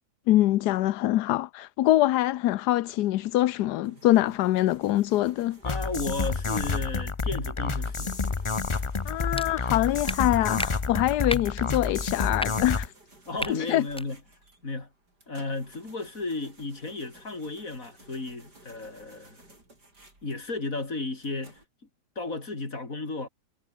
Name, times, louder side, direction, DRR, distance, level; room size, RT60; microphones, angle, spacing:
voice 1, 0.3-5.6 9.0-12.9 13.5-13.9, left 15 dB, 80° left, 1.2 m, -24 dB
sound 1, 3.8-21.6, right 2 dB, 80° right, 8.8 m, -55 dB
voice 2, 5.6-8.1 13.3-14.2 14.6-14.9 15.3-19.4 20.2-21.6 22.2-23.3, left 3 dB, 55° left, 4.7 m, -34 dB
sound 2, 5.6-12.9, left 4 dB, 25° left, 0.6 m, -29 dB
sound 3, 9.3-9.5 10.0-10.2 10.6-10.7 11.3-11.5 12.3-12.5 13.4-13.5 13.9-14.1, equal, 5° left, 1.6 m, -31 dB
omnidirectional pair, 1.7 m